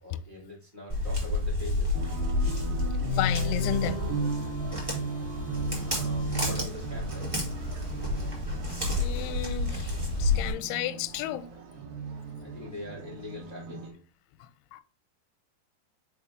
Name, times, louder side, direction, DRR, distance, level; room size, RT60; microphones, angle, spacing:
voice 1, 0.0-2.0 4.8-5.2 5.5-7.5 12.4-14.0, left 2 dB, 30° left, 0.8 m, -43 dB
Walk footsteps, 0.9-10.5, left 2 dB, 5° right, 2.4 m, -30 dB
sound 1, 1.9-13.9, right 2 dB, 65° right, 2.7 m, -35 dB
voice 2, 3.1-4.0 9.0-9.9 10.2-11.5 14.4-14.8, left 14 dB, 85° left, 2.4 m, -33 dB
Paris Metro doors closing, 3.4-9.8, left 6 dB, 50° left, 1.7 m, -48 dB
6.8 x 4.3 x 3.6 m
omnidirectional pair, 4.9 m